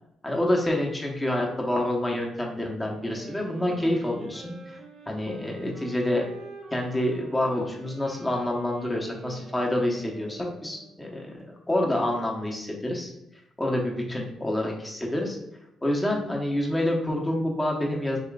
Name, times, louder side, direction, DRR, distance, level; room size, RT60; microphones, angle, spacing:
voice 1, 0.2-4.8 5.1-6.2 6.7-13.1 13.6-15.4 15.8-18.2, left 1 dB, 15° left, -1 dB, 1.1 m, -27 dB
sound 1, 2.9-11.1, right 3 dB, 50° right, 0.7 m, -46 dB
6.9 x 2.9 x 2.4 m, 0.86 s
cardioid pair, 90°, 0 cm